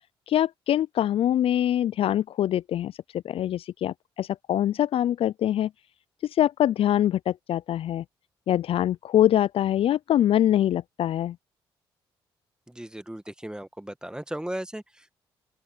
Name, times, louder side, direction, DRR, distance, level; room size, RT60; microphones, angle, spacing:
voice 1, 0.3-5.7 6.2-8.0 8.5-11.4, left 11 dB, 60° left, 0.4 m, -24 dB
voice 2, 12.7-15.1, right 1 dB, 5° right, 1.7 m, -36 dB
open air
hypercardioid pair, 50°, 11 cm